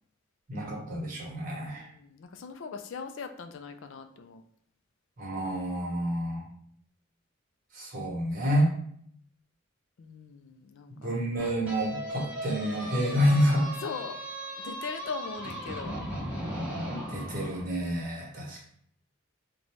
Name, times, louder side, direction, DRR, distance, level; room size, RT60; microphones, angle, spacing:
voice 1, 0.5-1.9 5.2-6.4 7.7-8.7 11.0-13.7 17.1-18.6, equal, 45° right, -3 dB, 1.1 m, -28 dB
voice 2, 1.7-4.4 10.0-11.2 13.8-14.2 14.6-16.0, left 5 dB, 70° left, 7 dB, 0.4 m, -40 dB
sound 1, 11.4-17.6, equal, 5° right, 1.0 m, -37 dB
4.0 x 2.3 x 3.0 m, 0.65 s
head